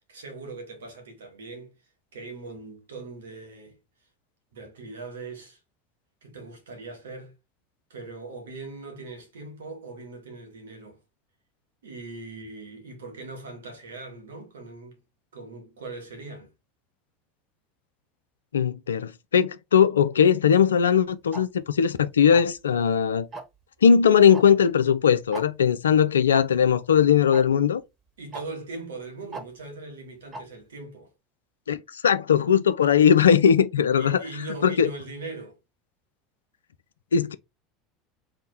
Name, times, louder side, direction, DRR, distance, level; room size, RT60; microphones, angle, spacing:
voice 1, 0.1-1.8 2.1-3.8 4.5-5.6 6.2-7.3 7.9-11.0 11.8-15.0 15.3-16.5 28.2-31.1 34.0-35.6, right 3 dB, 75° right, 1.4 m, -40 dB
voice 2, 18.5-23.3 23.8-27.8 31.7-34.2 34.6-34.9 37.1-37.3, left 7 dB, 80° left, 0.3 m, -19 dB
Tick-tock, 21.3-21.4 22.3-22.6 23.3-23.6 24.3-24.4 24.7-24.8 25.3-25.5 26.3-26.4 27.3-27.4 28.3-28.4 29.3-29.4 30.3-30.4, right 3 dB, 30° right, 1.1 m, -36 dB
3.4 x 2.1 x 4.2 m
hypercardioid pair, 75°, 0 cm